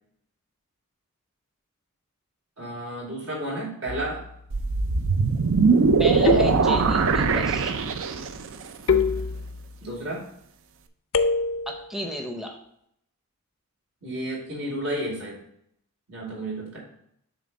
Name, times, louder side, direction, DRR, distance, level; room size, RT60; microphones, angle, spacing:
voice 1, 2.6-4.2 9.8-10.2 14.0-15.4 16.1-16.8, right 1 dB, 80° right, -5 dB, 3.0 m, -32 dB
sound 1, 3.9-4.4 6.3-7.2 8.9-9.8 11.1-11.9, left 5 dB, 65° left, 0.5 m, -26 dB
sound 2, 4.5-8.5, right 4 dB, 65° right, 0.5 m, -21 dB
voice 2, 6.0-7.7 11.7-12.6, equal, ahead, 2 dB, 0.6 m, -33 dB
7.4 x 3.3 x 5.3 m, 0.73 s
head